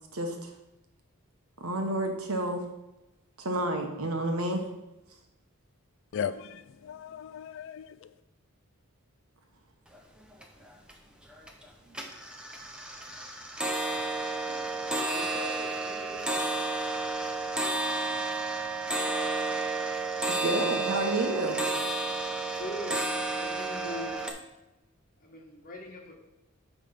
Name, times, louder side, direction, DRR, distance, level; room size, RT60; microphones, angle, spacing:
voice 1, 0.1-0.5 1.6-2.7 3.4-4.7 14.5-14.6 20.3-21.6, right 1 dB, 80° right, 1.2 m, -30 dB
voice 2, 6.1-8.1, left 8 dB, 60° left, 0.3 m, -37 dB
sound 1, 9.9-10.0 10.3-10.9 11.3-11.6 11.9-24.3, right 2 dB, 5° right, 0.7 m, -31 dB
voice 3, 15.1-16.5 22.6-24.4 25.2-26.1, left 1 dB, 40° left, 1.4 m, -42 dB
8.7 x 3.5 x 5.7 m
head